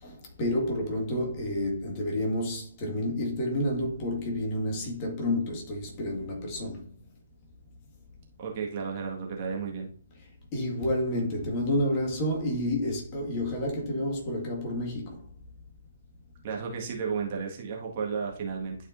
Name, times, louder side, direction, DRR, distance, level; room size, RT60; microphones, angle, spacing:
voice 1, 0.0-6.9 10.5-15.2, left 1 dB, 30° left, 1.9 m, -30 dB
voice 2, 8.4-9.9 16.4-18.8, right 5 dB, 35° right, 1.8 m, -33 dB
11.5 x 4.8 x 2.7 m
figure-of-eight pair, 130°, 0 cm